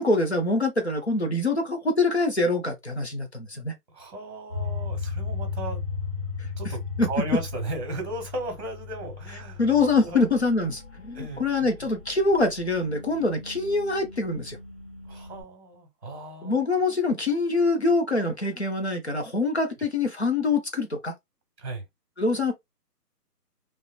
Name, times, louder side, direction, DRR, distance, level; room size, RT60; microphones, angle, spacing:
voice 1, 0.0-3.7 6.4-6.5 7.0-7.1 9.6-14.6 16.4-21.1 22.2-22.5, left 3 dB, 45° left, 0.5 m, -24 dB
voice 2, 3.9-5.8 6.6-6.8 7.1-9.6 10.0-10.2 11.1-11.9 15.1-16.6 21.6-21.8, right 2 dB, 45° right, 1.1 m, -36 dB
sound 1, 4.5-15.4, left 4 dB, 20° left, 1.0 m, -36 dB
2.7 x 2.0 x 2.3 m
hypercardioid pair, 180°, 48 cm